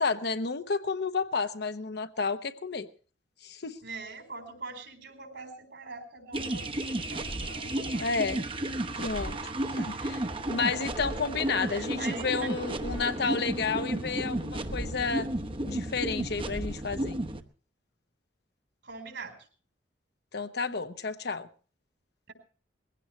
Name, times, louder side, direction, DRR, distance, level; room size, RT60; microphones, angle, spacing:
voice 1, 0.0-2.9 3.4-3.8 8.0-8.4 9.0-9.4 9.8-15.3 15.7-17.2 20.3-21.5, left 4 dB, 60° left, 0.9 m, -31 dB
voice 2, 3.8-8.1 8.6-8.7 9.7-10.1 11.7-12.5 12.8-13.0 18.8-19.3 20.6-20.7, right 4 dB, 70° right, 4.3 m, -43 dB
sound 1, 6.3-17.4, right 1 dB, 30° right, 0.9 m, -33 dB
21.0 x 16.0 x 3.2 m
head